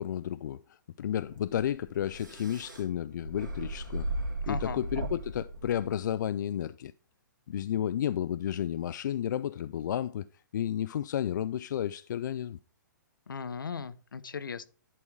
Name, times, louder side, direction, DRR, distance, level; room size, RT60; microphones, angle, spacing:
voice 1, 0.0-4.1 4.5-6.9 7.5-10.3 10.5-12.6, left 10 dB, 65° left, 0.4 m, -32 dB
sound 1, 1.1-6.3, right 2 dB, 75° right, 2.6 m, -37 dB
voice 2, 4.4-4.8 13.3-14.6, left 5 dB, 85° left, 0.7 m, -37 dB
11.0 x 4.4 x 4.7 m
hypercardioid pair, 135°, 11 cm